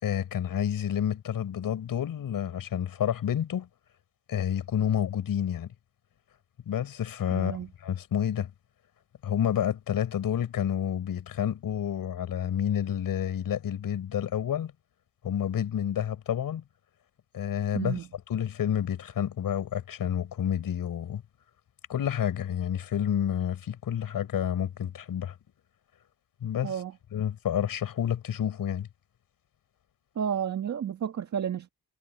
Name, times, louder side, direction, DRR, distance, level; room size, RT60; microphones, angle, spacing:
voice 1, 0.0-3.7 4.3-5.7 6.7-8.5 9.2-14.7 15.2-16.6 17.3-18.0 18.3-21.2 21.9-25.3 26.4-26.8 27.1-28.9, left 9 dB, 65° left, 5.8 m, -29 dB
voice 2, 7.3-7.7 17.7-18.0 26.6-26.9 30.2-31.7, right 8 dB, 50° right, 1.9 m, -31 dB
wide cardioid pair, 175°, 36 cm